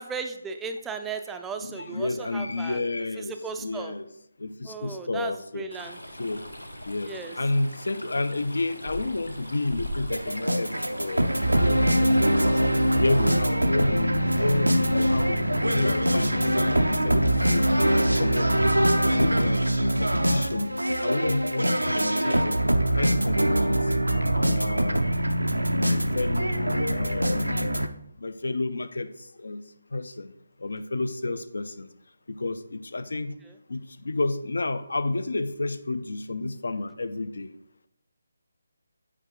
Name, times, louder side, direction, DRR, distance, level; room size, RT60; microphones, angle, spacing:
voice 1, 0.0-2.8 3.2-3.9 4.7-6.0 7.0-7.4 22.2-22.5, right 5 dB, 5° right, 6 dB, 0.4 m, -36 dB
voice 2, 1.6-4.1 4.4-5.7 6.2-6.4 6.9-7.1 7.4-10.7 11.0-11.3 11.6-12.6 13.0-17.7 18.2-19.6 20.0-22.6 22.9-23.9 24.3-25.1 25.8-27.6 28.2-29.6 29.9-30.3 30.6-31.9 32.3-33.3 33.7-37.5, left 2 dB, 60° left, 12 dB, 0.5 m, -30 dB
Stream, 5.7-13.4, left 1 dB, 85° left, 0.8 m, -40 dB
sound 1, 10.1-27.9, equal, 85° right, 0.5 m, -23 dB
8.0 x 4.9 x 3.0 m, 0.76 s
figure-of-eight pair, 150°, 0 cm